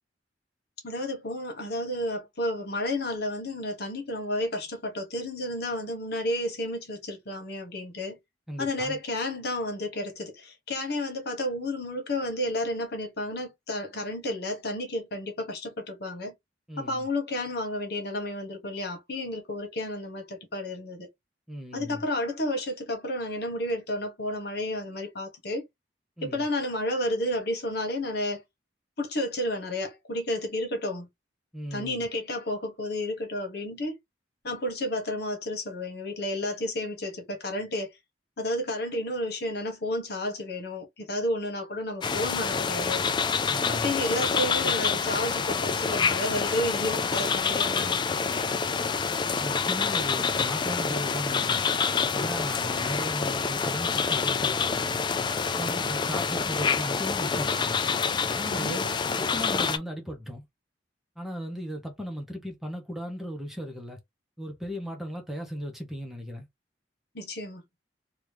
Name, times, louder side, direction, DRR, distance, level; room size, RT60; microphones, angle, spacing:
voice 1, 0.8-8.2 8.6-16.3 16.8-21.1 21.7-25.7 26.2-28.4 29.0-31.1 31.7-34.0 34.4-37.9 38.4-43.0 43.7-48.0 58.5-58.8 67.1-67.6, left 1 dB, 65° left, 1.3 m, -31 dB
voice 2, 8.5-9.0 16.7-17.1 21.5-22.0 26.2-26.5 31.5-32.1 43.5-43.9 49.4-51.6 52.1-55.0 55.6-57.8 58.3-58.8 59.2-60.4 61.2-64.0 64.4-66.5, equal, ahead, 0.9 m, -36 dB
sound 1, 42.0-59.8, left 5 dB, 25° left, 0.3 m, -27 dB
3.1 x 2.4 x 3.3 m
head